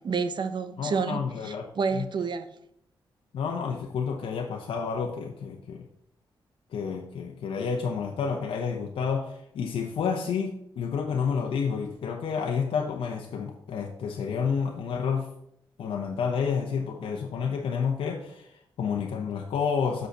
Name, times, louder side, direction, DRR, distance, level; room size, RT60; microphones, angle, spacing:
voice 1, 0.0-2.5, right 5 dB, 60° right, 0.8 m, -29 dB
voice 2, 0.8-1.6 1.9-2.1 3.3-5.8 6.7-15.3 15.8-20.1, left 6 dB, 85° left, 0.9 m, -30 dB
6.6 x 5.1 x 6.6 m
cardioid pair, 75°, 9 cm